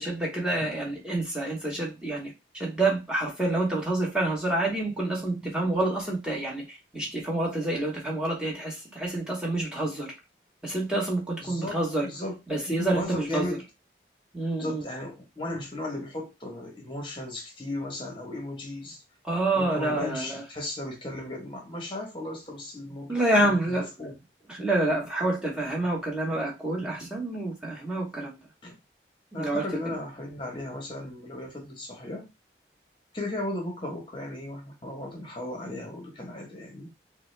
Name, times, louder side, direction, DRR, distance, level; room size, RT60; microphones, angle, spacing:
voice 1, 0.0-10.1 10.6-12.1 12.5-13.4 14.3-14.8 19.3-20.4 23.1-24.1 24.5-28.3 29.3-29.6, right 2 dB, 5° right, -3 dB, 1.0 m, -28 dB
voice 2, 11.4-12.4 12.7-13.6 14.6-19.0 19.5-24.2 28.6-28.8 29.3-32.3 33.1-36.9, left 1 dB, 25° left, 1 dB, 1.0 m, -36 dB
3.7 x 2.1 x 3.1 m, 0.24 s
head